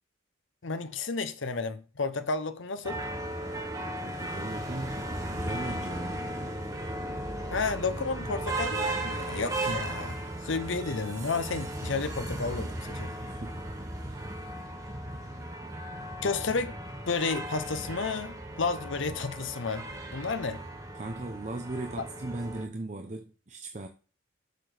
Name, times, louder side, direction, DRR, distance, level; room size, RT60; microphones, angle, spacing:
voice 1, 0.6-3.0 7.5-13.1 16.2-16.8 17.1-20.6, left 4 dB, 65° left, 0.8 m, -32 dB
sound 1, 2.8-22.7, right 1 dB, 15° right, 1.3 m, -36 dB
voice 2, 4.0-6.3 13.2-13.6 13.9-14.3 20.9-23.9, right 2 dB, 35° right, 0.6 m, -38 dB
6.6 x 6.1 x 4.9 m
head